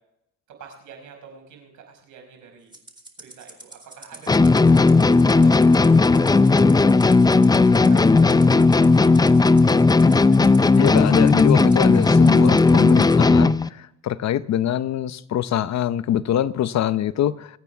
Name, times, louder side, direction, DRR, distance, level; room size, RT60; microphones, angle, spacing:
voice 1, 0.6-2.8 3.2-7.0 7.7-9.4 12.4-12.6, right 6 dB, 80° right, 5.3 m, -46 dB
Rattle (instrument), 2.7-13.2, right 2 dB, 15° right, 2.5 m, -46 dB
sound 1, 4.3-13.7, left 3 dB, 15° left, 0.5 m, -15 dB
voice 2, 10.7-17.5, left 11 dB, 65° left, 0.7 m, -24 dB
25.5 x 9.2 x 3.5 m
cardioid pair, 90°, 30 cm